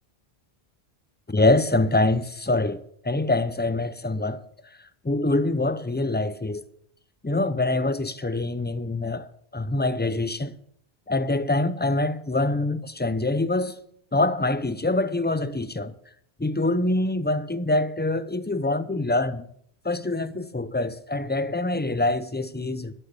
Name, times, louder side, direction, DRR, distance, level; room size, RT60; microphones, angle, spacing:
voice 1, 1.3-4.4 5.0-6.6 7.2-9.3 9.5-10.5 11.1-13.8 14.1-15.9 16.4-19.4 19.8-22.9, left 2 dB, 15° left, 0.3 m, -25 dB
12.5 x 7.7 x 6.9 m
omnidirectional pair, 1.1 m